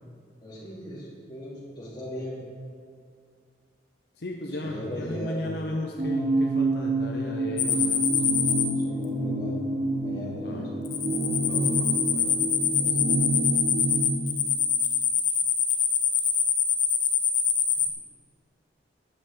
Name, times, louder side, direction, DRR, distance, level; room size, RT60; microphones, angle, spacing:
voice 1, 0.4-2.4 4.6-5.5 8.8-9.6 10.0-10.7 12.8-13.3, equal, 25° left, -6 dB, 2.7 m, -38 dB
voice 2, 4.2-8.3 10.4-10.7 11.4-12.3, left 1 dB, 60° left, 1 dB, 0.7 m, -35 dB
sound 1, 6.0-14.1, right 2 dB, 30° right, 1.3 m, -28 dB
sound 2, 7.6-8.6 10.9-17.9, left 8 dB, 40° left, 1.0 m, -24 dB
12.5 x 9.6 x 3.7 m, 2.2 s
head